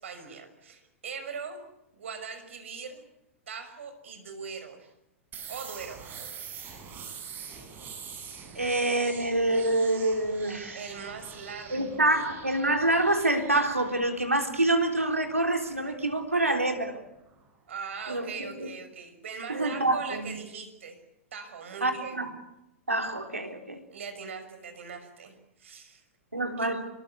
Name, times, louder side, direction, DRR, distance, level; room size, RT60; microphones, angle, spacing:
voice 1, 0.0-1.6 1.9-3.0 3.5-4.9 5.5-6.4 10.7-12.0 17.7-21.0 21.3-22.2 23.9-26.0 26.4-26.7, right 5 dB, 65° right, 9 dB, 6.0 m, -41 dB
sound 1, 5.3-17.0, right 6 dB, 25° right, 7.6 m, -45 dB
voice 2, 8.5-10.8 11.7-17.0 18.1-18.5 19.5-20.3 21.8-22.3 22.9-23.8 26.3-26.9, right 2 dB, 90° right, 4 dB, 3.8 m, -26 dB
27.0 x 22.5 x 8.5 m, 0.90 s
figure-of-eight pair, 105°, 7 cm